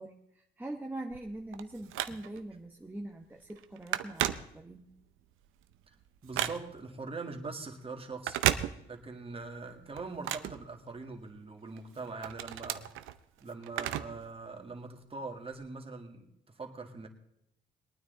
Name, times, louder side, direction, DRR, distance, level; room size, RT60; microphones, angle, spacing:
voice 1, 0.0-4.9, right 1 dB, 10° right, 1 dB, 1.0 m, -43 dB
Telephone, 1.1-2.5 3.0-3.2 3.5-5.0 5.4-6.9 8.1-9.2 9.5-11.3 11.8-14.3 14.6-14.7 15.5-15.6, right 13 dB, 90° right, 0.7 m, -34 dB
voice 2, 6.2-8.4 8.9-12.9 13.4-17.1, right 3 dB, 30° right, 3 dB, 2.1 m, -42 dB
21.5 x 9.4 x 3.9 m, 0.76 s
cardioid pair, 90°, 20 cm